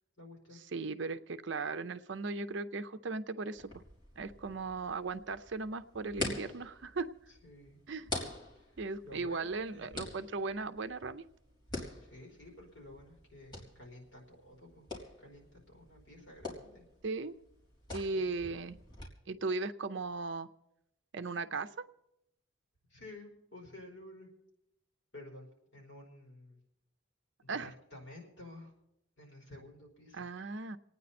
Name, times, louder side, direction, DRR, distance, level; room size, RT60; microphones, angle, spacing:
voice 1, 0.2-0.6 7.4-7.8 8.5-8.7 9.0-10.2 11.7-14.9 15.2-16.8 18.1-18.3 22.9-24.3 25.1-25.5 25.7-26.6 27.4-28.7 29.2-30.2, left 1 dB, 60° left, -1 dB, 4.7 m, -52 dB
voice 2, 0.7-3.8 4.2-7.1 7.9-8.1 8.8-11.2 17.0-17.3 17.9-18.8 19.3-20.5 21.1-21.7 27.5-27.7 30.1-30.8, right 3 dB, 60° right, 11 dB, 0.6 m, -37 dB
sound 1, 3.5-19.0, left 2 dB, 20° left, 3.5 m, -46 dB
27.5 x 9.4 x 4.2 m, 0.84 s
head